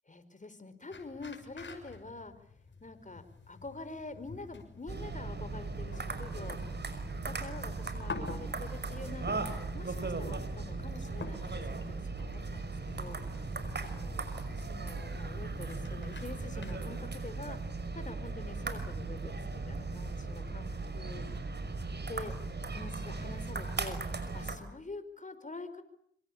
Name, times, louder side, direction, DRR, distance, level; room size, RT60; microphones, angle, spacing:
voice 1, 0.1-2.3 2.8-6.6 7.2-17.6 17.9-20.7 20.9-21.2 22.1-22.3 22.6-25.8, left 3 dB, 35° left, 11 dB, 4.8 m, -46 dB
sound 1, 0.9-17.0, left 4 dB, 60° left, 6.4 m, -49 dB
sound 2, 4.9-24.6, right 3 dB, 55° right, 5.7 m, -38 dB
26.5 x 25.0 x 8.7 m, 0.67 s
cardioid pair, 55°, 21 cm